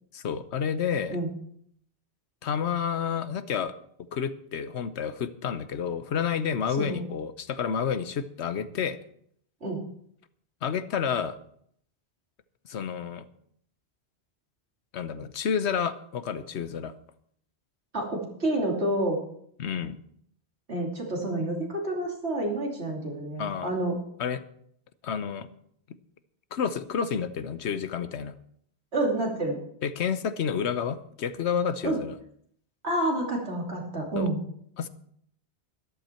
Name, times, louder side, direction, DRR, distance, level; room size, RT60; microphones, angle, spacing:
voice 1, 0.1-1.2 2.4-3.7 4.1-9.0 10.6-11.4 12.7-13.2 14.9-16.9 19.6-20.0 23.4-23.7 24.2-24.4 25.0-25.5 26.5-28.3 29.8-32.1 34.2-34.3 34.8-34.9, left 7 dB, 85° left, 13 dB, 1.1 m, -30 dB
voice 2, 6.7-7.1 9.6-9.8 17.9-19.2 20.7-24.0 28.9-29.6 31.8-32.0 32.8-34.4, right 1 dB, 80° right, -1 dB, 3.1 m, -29 dB
13.0 x 12.0 x 4.4 m, 0.67 s
omnidirectional pair, 1.1 m